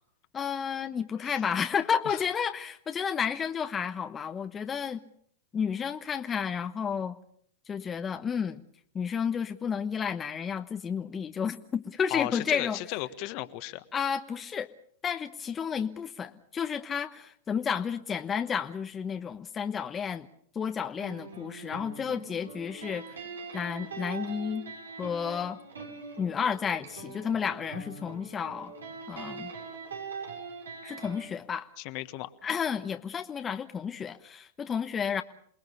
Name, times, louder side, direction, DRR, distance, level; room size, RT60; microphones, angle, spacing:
voice 1, 0.3-5.0 5.5-7.2 7.7-8.6 8.9-12.8 13.9-14.7 15.0-20.3 20.5-23.2 23.5-24.6 25.0-25.6 26.2-28.7 29.1-29.5 30.8-31.7 32.4-35.2, left 7 dB, 25° left, 7 dB, 1.1 m, -31 dB
voice 2, 12.1-13.8 31.8-32.3, left 17 dB, 50° left, 11 dB, 1.5 m, -35 dB
sound 1, 21.0-31.3, right 4 dB, 90° right, 7.1 m, -42 dB
28.0 x 19.5 x 7.0 m, 0.62 s
hypercardioid pair, 110°, 0 cm